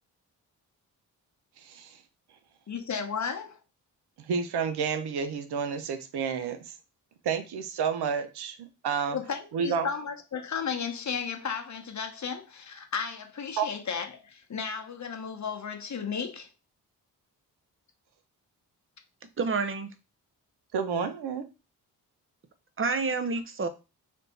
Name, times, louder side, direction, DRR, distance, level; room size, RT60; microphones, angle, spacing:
voice 1, 1.6-2.0 4.2-6.7 7.2-8.6 8.8-9.2 9.5-9.9 13.6-13.7 20.7-21.5, right 6 dB, 65° right, 0.8 m, -30 dB
voice 2, 2.7-3.6 9.1-16.5, left 6 dB, 40° left, 0.9 m, -34 dB
voice 3, 19.4-19.9 22.8-23.7, right 4 dB, 30° right, 0.8 m, -28 dB
3.5 x 2.6 x 4.2 m
supercardioid pair, 45°, 42 cm